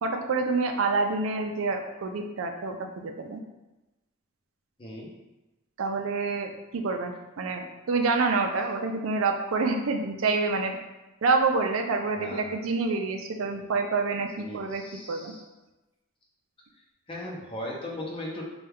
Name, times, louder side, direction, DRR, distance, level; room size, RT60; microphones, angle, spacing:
voice 1, 0.0-3.4 5.8-10.8 11.2-15.3, right 3 dB, 80° right, 4 dB, 0.4 m, -27 dB
voice 2, 4.8-5.1 12.2-12.5 14.4-15.4 17.1-18.4, left 1 dB, 25° left, -3 dB, 0.7 m, -38 dB
4.3 x 2.3 x 3.4 m, 1.0 s
head